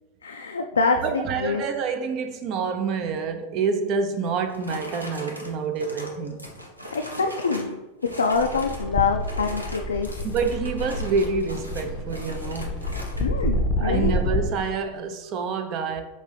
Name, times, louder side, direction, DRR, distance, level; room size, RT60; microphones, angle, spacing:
voice 1, 0.2-1.6 6.9-7.7 8.1-10.2 13.2-14.2, left 4 dB, 70° left, 0.3 m, -25 dB
voice 2, 1.0-6.4 10.2-12.7 13.8-16.0, right 5 dB, 40° right, 0.4 m, -27 dB
sound 1, 4.2-7.7 8.0-8.9 9.2-13.3, left 1 dB, 85° right, 0.7 m, -40 dB
sound 2, 8.3-14.5, left 1 dB, 15° left, 0.6 m, -28 dB
5.1 x 2.6 x 3.3 m
figure-of-eight pair, 90°, 0 cm